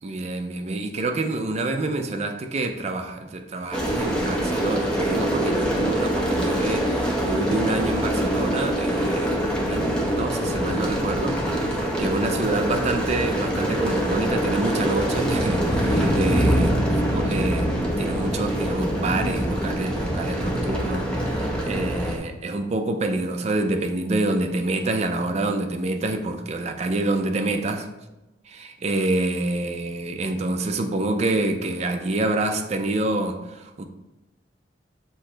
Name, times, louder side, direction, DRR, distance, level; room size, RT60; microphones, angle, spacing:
voice 1, 0.0-16.8 17.1-27.9 28.5-33.8, right 2 dB, 35° right, 6 dB, 0.4 m, -27 dB
sound 1, 3.7-22.2, equal, 5° left, 0.6 m, -24 dB
6.2 x 2.1 x 3.8 m, 0.99 s
head